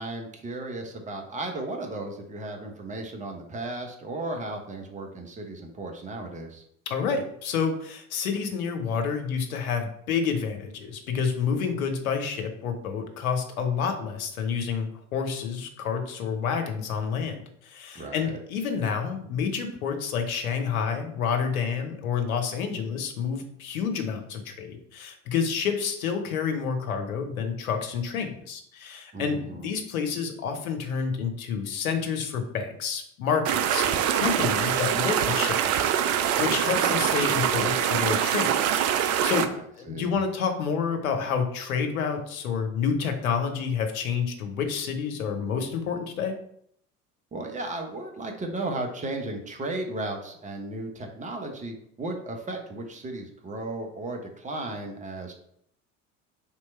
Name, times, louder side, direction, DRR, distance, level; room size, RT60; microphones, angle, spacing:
voice 1, 0.0-6.6 17.9-18.4 29.1-29.7 39.4-40.2 47.3-55.3, right 2 dB, 15° right, 3 dB, 0.9 m, -35 dB
voice 2, 6.9-38.5 39.2-46.4, left 6 dB, 70° left, 5 dB, 0.9 m, -29 dB
sound 1, 33.4-39.5, right 9 dB, 35° right, 0.4 m, -24 dB
3.7 x 3.1 x 4.3 m, 0.68 s
figure-of-eight pair, 70°, 44 cm